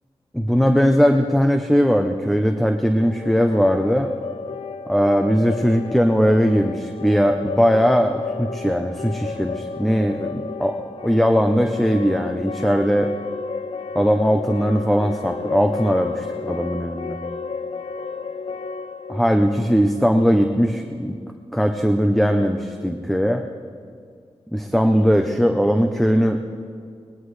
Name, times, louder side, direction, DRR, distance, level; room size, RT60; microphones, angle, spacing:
voice 1, 0.3-4.1 4.9-13.1 13.9-17.2 19.1-21.2 21.5-23.4 24.5-26.4, equal, ahead, 5 dB, 0.6 m, -19 dB
sound 1, 3.0-20.8, left 5 dB, 65° left, 0.6 m, -33 dB
20.0 x 19.5 x 3.2 m, 2.2 s
wide cardioid pair, 135°, 10 cm